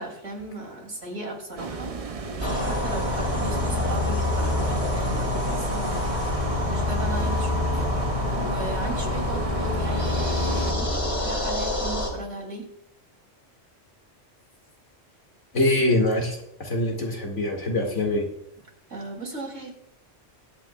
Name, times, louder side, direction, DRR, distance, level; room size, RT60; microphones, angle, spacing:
voice 1, 0.0-1.9 2.2-6.1 6.4-7.9 8.4-12.7 18.9-19.7, right 2 dB, 85° right, 1 dB, 3.2 m, -37 dB
sound 1, 1.6-10.7, right 4 dB, 40° right, 0.6 m, -34 dB
sound 2, 2.4-12.1, left 2 dB, 25° left, 2.9 m, -26 dB
voice 2, 15.5-18.2, left 1 dB, 70° left, 1 dB, 2.5 m, -24 dB
22.0 x 8.8 x 2.3 m, 0.76 s
omnidirectional pair, 1.3 m